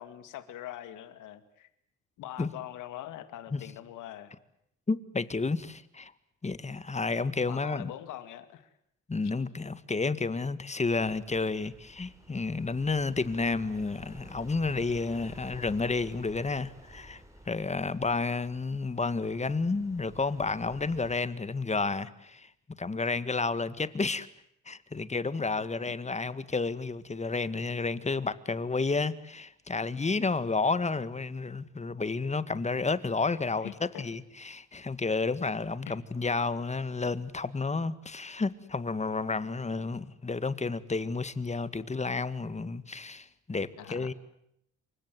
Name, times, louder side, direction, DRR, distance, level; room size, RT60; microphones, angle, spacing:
voice 1, 0.0-1.7 2.2-4.3 7.5-8.7 25.6-26.1 33.6-34.0 35.9-36.0 43.8-44.1, left 12 dB, 90° left, 2.3 m, -43 dB
voice 2, 4.9-6.1 6.4-7.9 9.1-22.5 22.8-24.3 24.7-33.7 34.0-44.1, left 3 dB, 20° left, 1.9 m, -31 dB
sound 1, 10.8-21.2, right 1 dB, 10° right, 5.9 m, -52 dB
28.0 x 24.5 x 7.8 m
cardioid pair, 90°, 30 cm